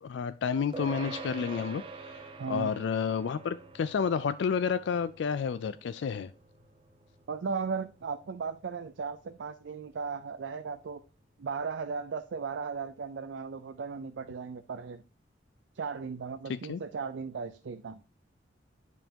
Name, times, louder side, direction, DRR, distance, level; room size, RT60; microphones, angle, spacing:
voice 1, 0.0-6.3 16.5-16.8, left 6 dB, 70° left, 0.3 m, -31 dB
sound 1, 0.7-10.4, right 3 dB, 30° right, 0.9 m, -47 dB
voice 2, 2.4-2.7 7.3-11.0 11.4-15.0 15.7-18.0, right 5 dB, 70° right, 0.4 m, -36 dB
9.3 x 5.4 x 2.8 m
head